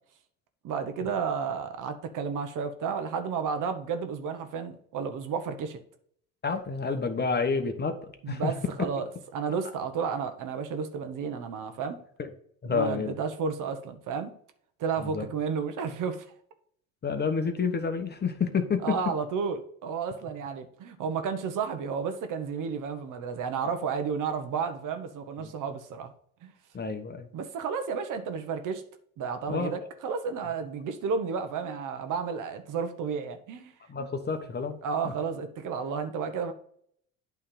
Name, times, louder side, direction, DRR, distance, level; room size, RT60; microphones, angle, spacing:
voice 1, 0.6-5.8 8.2-9.1 9.3-12.0 12.7-14.3 14.8-16.3 18.8-26.1 26.4-26.5 27.3-28.8 29.2-33.7 34.8-36.5, right 6 dB, 50° right, 8 dB, 1.1 m, -32 dB
voice 2, 6.4-8.5 12.2-12.3 12.6-13.2 15.0-15.3 17.0-19.1 23.6-23.7 26.7-27.3 29.5-29.7 33.9-34.8, left 5 dB, 25° left, 7 dB, 1.1 m, -29 dB
8.7 x 3.5 x 5.5 m, 0.64 s
supercardioid pair, 90°, 40 cm